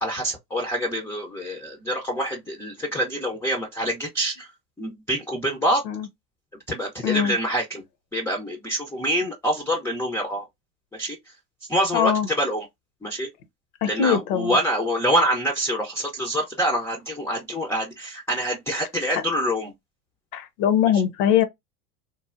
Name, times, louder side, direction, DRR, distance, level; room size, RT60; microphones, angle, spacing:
voice 1, 0.0-4.5 4.8-5.8 6.7-7.8 8.1-10.4 10.9-11.3 11.7-12.7 13.0-13.3 13.8-19.7, equal, 5° left, 0.4 m, -26 dB
voice 2, 7.0-7.3 11.9-12.3 13.8-14.6 20.3-21.4, left 9 dB, 65° left, 0.8 m, -21 dB
3.2 x 2.1 x 2.4 m
hypercardioid pair, 100°, 47 cm